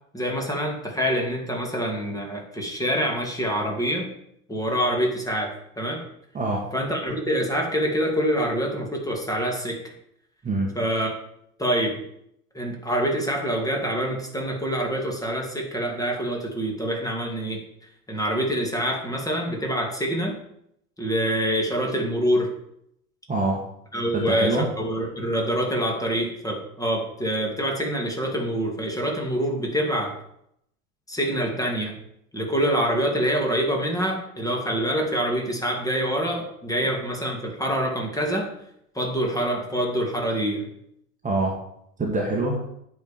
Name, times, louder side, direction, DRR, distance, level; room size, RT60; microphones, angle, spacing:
voice 1, 0.1-4.1 4.5-6.0 6.7-9.9 10.7-11.1 11.6-12.0 12.5-17.6 18.1-20.3 21.0-22.5 23.9-30.2 31.1-31.9 32.3-38.5 38.9-40.7, equal, 10° left, 0 dB, 2.4 m, -26 dB
voice 2, 6.3-6.7 10.4-10.7 23.3-23.6 24.1-24.7 41.2-41.6 42.0-42.6, right 2 dB, 15° right, -1 dB, 1.7 m, -25 dB
9.1 x 4.8 x 7.2 m, 0.74 s
figure-of-eight pair, 85°, 46 cm